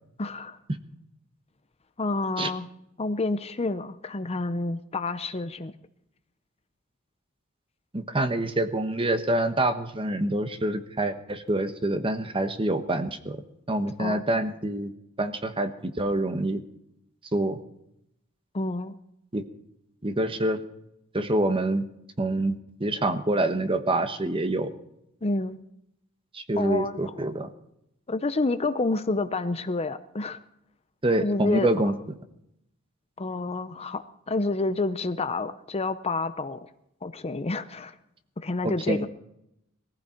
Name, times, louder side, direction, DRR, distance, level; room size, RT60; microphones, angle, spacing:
voice 1, 0.2-0.6 2.0-2.7 3.0-5.7 14.0-14.2 18.5-18.9 25.2-25.6 26.6-27.1 28.1-30.4 31.1-31.7 33.2-36.7 37.0-37.9 38.4-39.1, left 3 dB, 30° left, 11 dB, 0.7 m, -29 dB
voice 2, 7.9-13.4 13.7-14.9 15.2-16.6 17.3-17.6 19.3-19.4 20.0-20.6 21.1-21.8 22.2-24.7 26.3-27.5 31.0-31.9 38.6-39.1, right 1 dB, 25° right, 9 dB, 1.2 m, -26 dB
20.5 x 15.0 x 4.5 m, 0.79 s
head